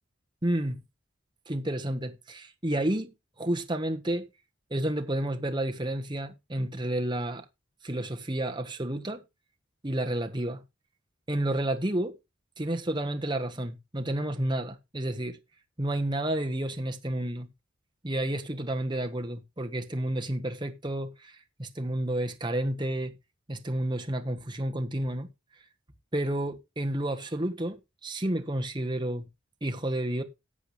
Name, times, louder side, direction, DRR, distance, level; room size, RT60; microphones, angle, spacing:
voice 1, 0.4-0.8 1.5-4.3 4.7-7.4 7.8-9.2 9.8-10.6 11.3-12.2 12.6-15.4 15.8-17.5 18.0-23.1 23.5-25.3 26.1-29.3 29.6-30.2, right 1 dB, 25° right, 1.4 m, -30 dB
14.0 x 8.2 x 3.3 m
head